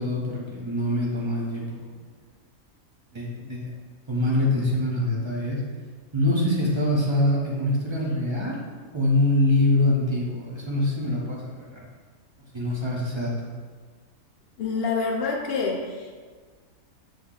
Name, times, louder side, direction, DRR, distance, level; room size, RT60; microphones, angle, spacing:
voice 1, 0.0-1.8 3.1-3.7 4.1-5.6 6.1-8.6 8.9-11.8 12.5-13.5, left 1 dB, 30° right, -4 dB, 0.5 m, -24 dB
voice 2, 14.6-16.1, left 4 dB, 60° left, 0 dB, 0.7 m, -27 dB
5.6 x 3.5 x 2.4 m, 1.5 s
omnidirectional pair, 1.5 m